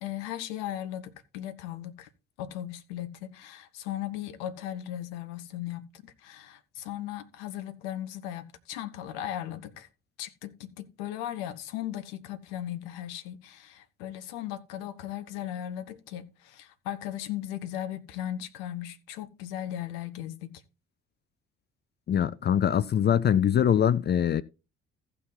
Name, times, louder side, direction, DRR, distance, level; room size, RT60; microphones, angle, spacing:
voice 1, 0.0-2.1 2.4-9.9 10.2-20.6, left 12 dB, 65° left, 1.0 m, -37 dB
voice 2, 22.1-24.4, left 9 dB, 30° left, 0.5 m, -23 dB
15.0 x 5.8 x 4.0 m
figure-of-eight pair, 45°, 33 cm